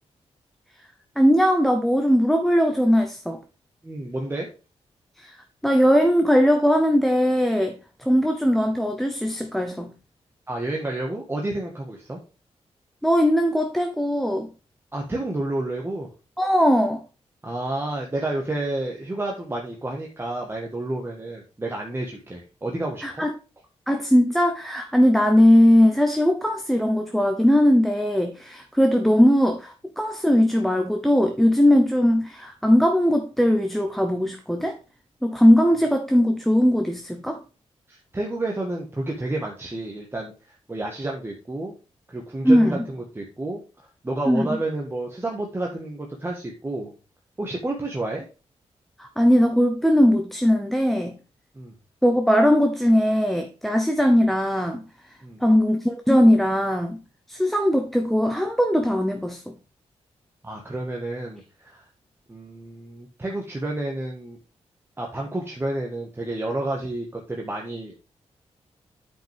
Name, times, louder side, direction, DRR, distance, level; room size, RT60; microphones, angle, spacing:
voice 1, 1.2-3.4 5.2-5.3 5.6-7.8 8.1-9.9 13.0-14.5 16.4-17.0 23.0-23.3 23.9-34.8 35.2-37.4 42.4-42.8 44.3-44.6 49.0-51.2 52.0-54.8 55.4-57.0 57.3-59.4, equal, ahead, 0.8 m, -19 dB
voice 2, 3.8-4.5 10.5-12.2 14.9-16.1 17.4-23.2 37.9-40.3 40.7-41.7 42.1-43.6 44.0-46.9 47.4-48.3 51.5-51.7 55.2-55.4 60.4-61.8 62.3-64.4 65.0-67.9, right 2 dB, 20° right, 1.5 m, -30 dB
9.0 x 5.2 x 3.5 m
cardioid pair, 95°, 11 cm